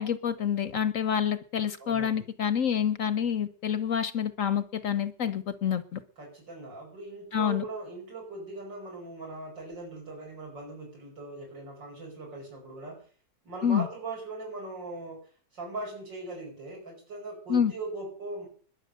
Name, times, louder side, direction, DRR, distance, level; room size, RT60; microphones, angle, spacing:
voice 1, 0.0-6.0 7.3-7.6 13.6-13.9 17.5-17.7, left 8 dB, 55° left, 14 dB, 1.0 m, -27 dB
voice 2, 1.8-2.3 6.2-13.0 13.4-15.3 15.5-18.5, right 2 dB, 85° right, -1 dB, 5.9 m, -40 dB
21.0 x 7.4 x 6.5 m, 0.43 s
omnidirectional pair, 1.9 m